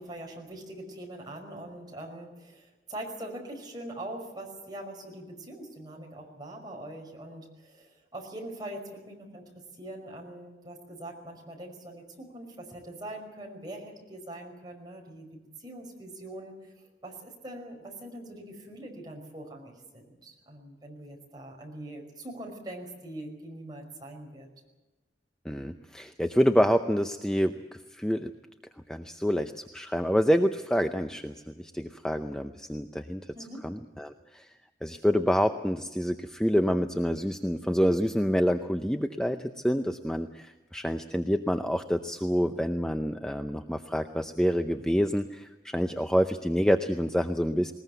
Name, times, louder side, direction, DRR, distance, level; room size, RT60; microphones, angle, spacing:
voice 1, 0.0-16.7 17.0-24.5 33.3-33.7, right 1 dB, 25° right, 1 dB, 5.3 m, -43 dB
voice 2, 25.4-28.3 28.9-33.3 33.6-34.5 34.8-47.7, equal, 5° left, 7 dB, 0.6 m, -27 dB
20.5 x 20.0 x 8.1 m, 1.1 s
head